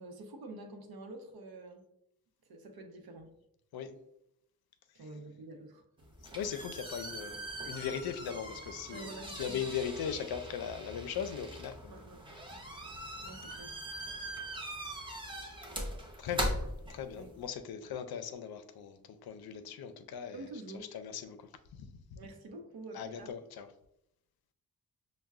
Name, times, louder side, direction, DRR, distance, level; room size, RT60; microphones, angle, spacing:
voice 1, 0.0-1.9 2.5-3.3 4.9-6.1 8.9-9.6 11.9-12.2 13.2-13.7 17.2-17.3 20.3-20.9 22.2-23.4, right 2 dB, 80° right, 4 dB, 0.7 m, -47 dB
sound 1, 6.0-17.4, right 1 dB, 15° right, 0.8 m, -41 dB
voice 2, 6.3-11.9 14.2-14.9 16.2-16.6 16.9-20.5 20.9-22.2 22.9-23.7, left 7 dB, 85° left, 9 dB, 0.5 m, -39 dB
6.3 x 2.1 x 2.3 m, 0.78 s
wide cardioid pair, 100°, 36 cm